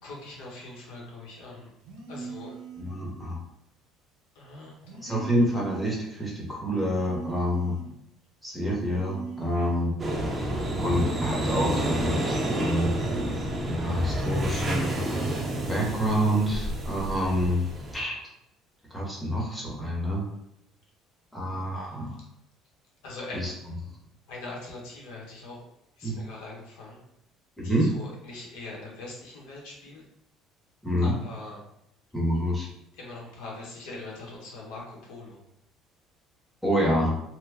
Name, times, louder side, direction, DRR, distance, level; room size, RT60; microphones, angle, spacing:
voice 1, 0.0-1.7 2.1-2.6 4.3-5.3 9.5-9.7 21.7-22.0 23.0-23.4 24.3-25.6 26.0-27.0 27.6-30.0 31.0-31.6 32.9-35.4, left 2 dB, 85° left, -3 dB, 1.2 m, -42 dB
sound 1, 1.8-3.0 4.8-6.0 6.8-8.0 8.8-10.0 10.8-12.0 12.8-14.0 14.8-16.0 16.8-17.1, right 5 dB, 90° right, 0.8 m, -41 dB
voice 2, 2.8-3.4 5.0-7.8 8.4-9.9 10.8-13.0 13.7-14.9 15.7-17.6 17.9-18.2 18.9-20.2 21.3-22.2 23.3-23.5 26.0-26.2 27.6-27.9 30.8-31.1 32.1-32.7 36.6-37.2, equal, 5° left, -4 dB, 0.9 m, -27 dB
sound 2, 10.0-18.0, right 1 dB, 20° right, 0.5 m, -29 dB
3.0 x 2.2 x 3.4 m, 0.79 s
cardioid pair, 150°, 0 cm